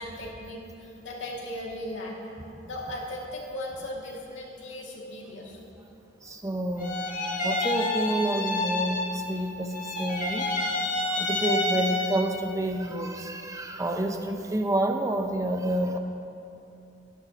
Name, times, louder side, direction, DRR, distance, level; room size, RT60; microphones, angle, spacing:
voice 1, 0.0-2.2 2.7-5.6, left 1 dB, 90° left, -3 dB, 2.4 m, -37 dB
voice 2, 6.2-7.1 7.4-10.5 11.1-16.0, right 1 dB, 20° right, 5 dB, 0.7 m, -29 dB
sound 1, 6.8-9.4 9.7-12.4, left 1 dB, 45° left, 1.6 m, -29 dB
18.0 x 13.0 x 3.0 m, 2.7 s
head